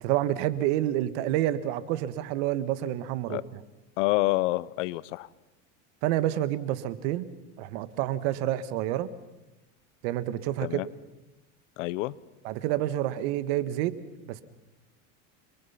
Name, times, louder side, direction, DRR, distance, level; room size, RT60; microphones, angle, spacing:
voice 1, 0.0-3.4 6.0-7.3 7.6-9.1 10.0-10.8 12.4-14.0 14.2-14.4, right 13 dB, 75° right, 14 dB, 1.7 m, -28 dB
voice 2, 4.0-5.3 10.6-10.9 11.8-12.1, left 19 dB, 85° left, 20 dB, 0.9 m, -27 dB
29.5 x 22.0 x 5.8 m, 1.0 s
supercardioid pair, 140°, 36 cm